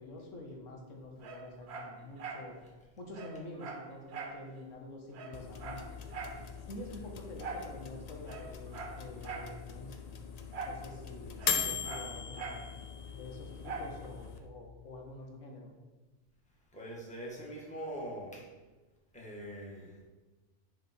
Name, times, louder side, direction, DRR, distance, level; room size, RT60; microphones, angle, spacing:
voice 1, 0.0-2.6 3.0-6.2 6.7-10.1 10.6-12.6 13.2-15.7, left 1 dB, 80° left, 1 dB, 1.4 m, -47 dB
Dog, 1.2-2.5 2.8-2.9 3.1-4.4 4.8-4.9 5.1-6.4 7.4-7.7 8.2-9.5 10.5-10.9 11.1-12.7 13.6-14.0 14.5-14.6, right 4 dB, 60° right, 1.0 m, -42 dB
sound 1, 5.3-14.4, left 7 dB, 55° left, 0.4 m, -40 dB
voice 2, 16.7-18.5 19.1-20.0, right 1 dB, 5° left, -4 dB, 1.5 m, -43 dB
10.5 x 3.5 x 4.4 m, 1.2 s
omnidirectional pair, 1.3 m